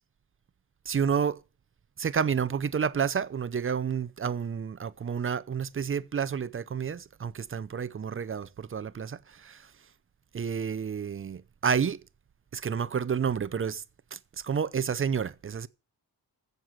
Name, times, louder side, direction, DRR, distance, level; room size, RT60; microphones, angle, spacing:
voice 1, 0.9-1.4 2.0-9.7 10.3-12.0 12.5-13.8 14.1-15.7, right 7 dB, 35° right, 0.6 m, -30 dB
15.5 x 6.7 x 5.9 m
wide cardioid pair, 180°, 39 cm